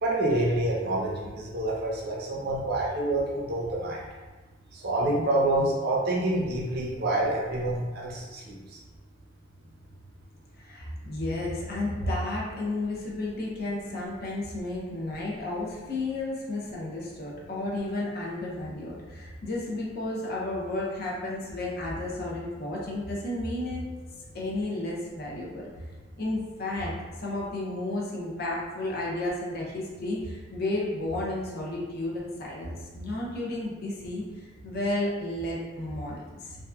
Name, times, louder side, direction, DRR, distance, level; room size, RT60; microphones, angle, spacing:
voice 1, 0.0-4.0 4.7-8.6, right 1 dB, 55° right, -4 dB, 0.5 m, -27 dB
voice 2, 10.6-23.8 24.3-25.7 26.2-36.6, left 2 dB, 50° left, -4 dB, 0.6 m, -32 dB
2.7 x 2.1 x 2.3 m, 1.3 s
head